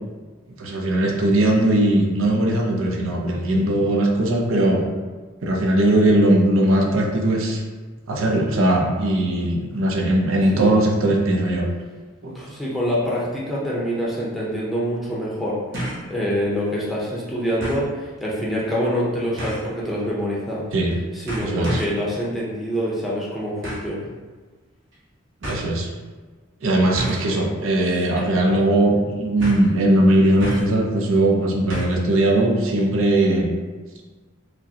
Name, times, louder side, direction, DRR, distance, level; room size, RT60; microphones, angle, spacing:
voice 1, 0.6-4.8 5.4-7.6 8.1-11.7 12.2-12.4 20.7-20.9 21.4-21.8 25.4-25.9 26.6-33.5, right 1 dB, 80° right, 0 dB, 0.6 m, -19 dB
voice 2, 12.3-15.6 16.1-20.7 21.1-24.1 28.1-28.5, equal, ahead, -6 dB, 0.6 m, -26 dB
sound 1, 15.7-16.1 16.5-16.6 17.6-17.9 19.4-19.7 20.7-20.9 21.3-22.0 23.6-23.9 24.9-25.0 25.4-25.6 26.9-27.3 27.8-28.1 28.3-28.4 29.4-29.7 30.4-30.8 31.7-32.0 32.3-32.4, equal, 55° right, 1.0 m, -30 dB
4.9 x 2.1 x 2.7 m, 1.4 s
head